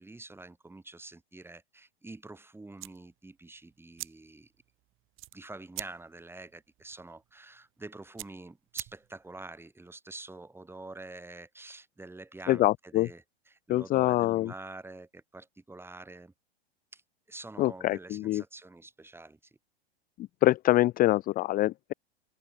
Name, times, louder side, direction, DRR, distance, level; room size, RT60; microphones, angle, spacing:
voice 1, 0.0-4.5 5.3-16.3 16.9-17.0 17.3-19.4, right 2 dB, 5° right, 3.0 m, -47 dB
sound 1, 2.7-9.4, right 17 dB, 40° right, 4.6 m, -46 dB
voice 2, 12.5-13.1 13.7-14.5 17.6-18.4 20.4-21.9, left 16 dB, 25° left, 0.6 m, -25 dB
hypercardioid pair, 100°, 32 cm